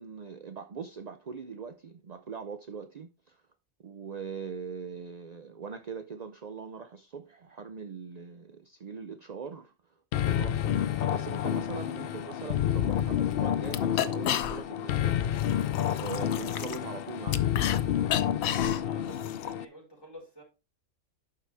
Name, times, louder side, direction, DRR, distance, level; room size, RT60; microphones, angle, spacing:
voice 1, 0.0-3.4 3.8-15.5 16.0-17.5, right 6 dB, 50° right, 0.5 m, -42 dB
sound 1, 10.1-19.7, left 10 dB, 65° left, 0.6 m, -29 dB
sound 2, 12.9-13.0 13.3-13.4 13.6-14.9 15.2-17.8 18.1-19.5, left 11 dB, 80° left, 1.1 m, -33 dB
voice 2, 18.8-20.4, equal, 15° left, 4.4 m, -50 dB
11.5 x 4.8 x 3.4 m
omnidirectional pair, 1.4 m